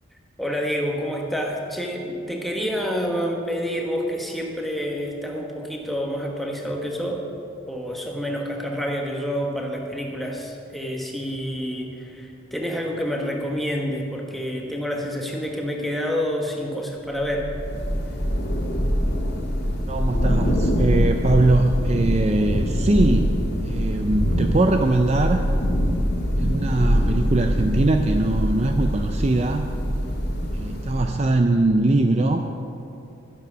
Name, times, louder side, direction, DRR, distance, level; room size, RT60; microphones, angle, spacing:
voice 1, 0.4-7.3 7.7-17.5, equal, ahead, 0 dB, 1.2 m, -28 dB
Thunder / Rain, 17.2-31.3, equal, 55° left, 2.3 m, -23 dB
voice 2, 19.9-23.4 23.6-25.4 26.4-29.7 30.5-32.5, right 2 dB, 35° right, 5 dB, 0.4 m, -21 dB
12.0 x 10.5 x 6.2 m, 2.7 s
head